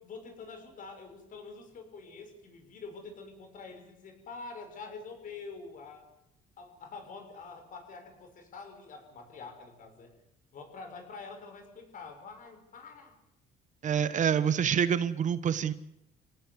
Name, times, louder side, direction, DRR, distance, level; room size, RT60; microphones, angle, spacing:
voice 1, 0.0-6.0 6.6-10.1 10.5-13.1, left 4 dB, 55° left, 5 dB, 6.3 m, -46 dB
voice 2, 13.8-15.7, right 8 dB, 45° right, 14 dB, 1.1 m, -27 dB
26.5 x 18.0 x 8.1 m, 0.84 s
cardioid pair, 110°, 17 cm